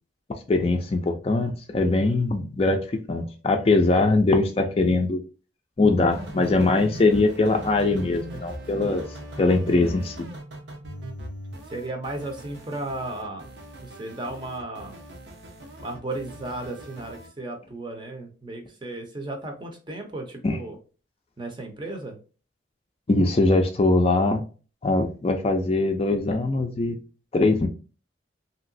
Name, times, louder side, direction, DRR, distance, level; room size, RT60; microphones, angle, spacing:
voice 1, 0.3-5.2 5.8-9.0 9.4-10.3 20.4-20.6 23.1-24.4 24.8-27.0 27.3-27.7, left 2 dB, 30° left, 5 dB, 0.4 m, -22 dB
sound 1, 6.1-17.3, right 1 dB, 75° right, 0.8 m, -40 dB
voice 2, 11.7-13.5 13.8-15.0 15.8-20.8 21.4-22.2, right 2 dB, 25° right, 3 dB, 0.6 m, -35 dB
3.0 x 2.8 x 2.5 m, 0.36 s
head